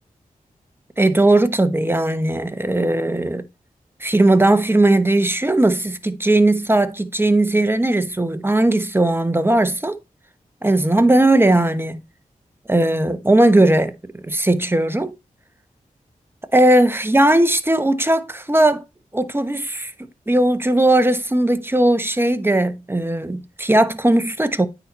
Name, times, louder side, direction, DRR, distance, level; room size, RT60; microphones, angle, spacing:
voice 1, 1.0-3.4 4.0-9.9 10.6-12.0 12.7-15.1 16.5-18.8 19.1-19.9 20.3-24.7, right 1 dB, 15° right, 1.1 m, -18 dB
9.1 x 4.1 x 4.2 m
cardioid pair, 45°, 15 cm